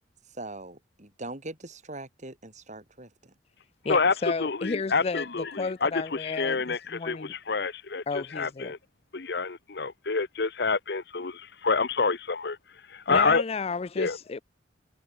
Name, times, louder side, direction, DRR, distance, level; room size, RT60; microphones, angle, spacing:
voice 1, 0.2-3.3, right 2 dB, 40° right, 4.2 m, -41 dB
voice 2, 3.8-7.4 8.1-8.7 13.1-14.4, left 4 dB, 35° left, 0.4 m, -33 dB
voice 3, 4.4-8.8 9.1-12.6 12.9-13.4 14.0-14.2, left 4 dB, 60° left, 1.0 m, -27 dB
head